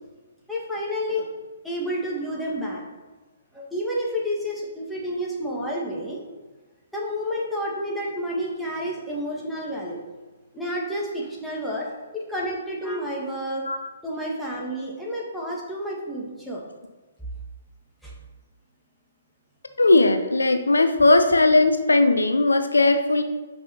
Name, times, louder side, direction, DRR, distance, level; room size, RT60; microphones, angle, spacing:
voice 1, 0.5-1.3 1.6-2.8 3.5-6.2 6.9-10.0 10.5-11.9 12.1-13.6 14.0-16.6 18.0-18.1, equal, ahead, -6 dB, 1.9 m, -30 dB
voice 2, 19.8-23.2, left 2 dB, 75° left, 8 dB, 0.6 m, -18 dB
5.8 x 5.5 x 5.5 m, 1.3 s
figure-of-eight pair, 125°, 0 cm